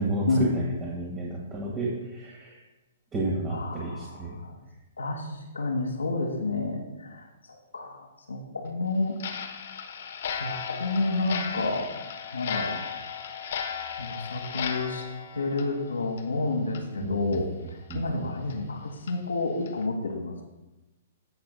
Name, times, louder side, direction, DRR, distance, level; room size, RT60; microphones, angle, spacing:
voice 1, 0.0-2.6 3.1-4.4 17.0-17.4 17.9-18.0, right 2 dB, 20° right, -4 dB, 1.7 m, -31 dB
voice 2, 3.5-4.5 5.0-9.2 10.3-11.9 12.3-12.8 13.1-13.2 14.0-15.0 15.3-20.4, left 2 dB, 75° left, 1 dB, 1.3 m, -30 dB
Clock, 9.2-16.4 16.7-16.8 17.3-17.4 17.9-18.0 18.5-18.6 19.1-19.2 19.7-19.8, left 7 dB, 55° left, 0.9 m, -36 dB
17.0 x 5.9 x 2.2 m, 1.0 s
figure-of-eight pair, 115°, 0 cm